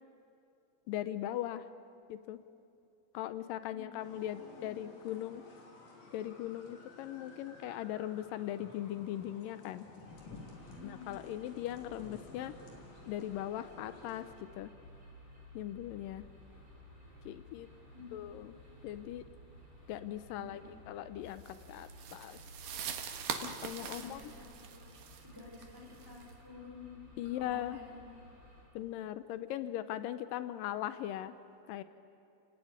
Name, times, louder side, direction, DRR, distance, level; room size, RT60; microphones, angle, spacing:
voice 1, 0.9-1.7 2.1-2.4 3.1-5.4 6.1-9.9 10.8-12.5 13.1-14.3 14.6-14.7 15.6-16.3 17.3-17.7 18.1-18.6 18.8-19.3 19.9-20.6 20.9-22.4 23.4-24.2 27.2-27.8 28.8-31.3 31.7-31.8, left 12 dB, 85° left, 12 dB, 2.4 m, -39 dB
sound 1, 4.0-14.4, left 3 dB, 70° left, 4.5 m, -54 dB
voice 2, 4.3-5.2 10.7-11.1 17.9-18.1 20.3-20.8 23.8-26.9 27.3-28.1, left 3 dB, 5° right, -2 dB, 5.4 m, -52 dB
sound 2, 10.1-28.6, equal, 35° left, 8.0 m, -56 dB
sound 3, 21.4-26.3, right 8 dB, 80° right, 3.0 m, -43 dB
30.0 x 17.5 x 9.6 m, 2.6 s
omnidirectional pair, 3.9 m